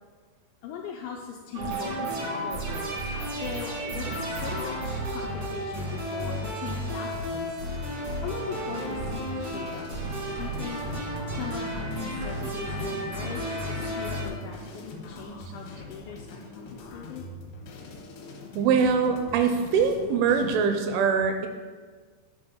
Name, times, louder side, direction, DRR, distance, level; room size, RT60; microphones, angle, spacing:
voice 1, 0.6-7.9 8.2-9.9 10.4-10.9 11.3-17.3, left 6 dB, 85° left, 0 dB, 2.5 m, -40 dB
sound 1, 1.5-14.3, right 1 dB, 65° right, 1.4 m, -32 dB
sound 2, 8.5-20.7, left 3 dB, 70° left, 2.9 m, -43 dB
voice 2, 18.6-21.5, right 6 dB, 85° right, 6 dB, 2.9 m, -23 dB
11.5 x 5.8 x 3.8 m, 1.5 s
omnidirectional pair, 5.7 m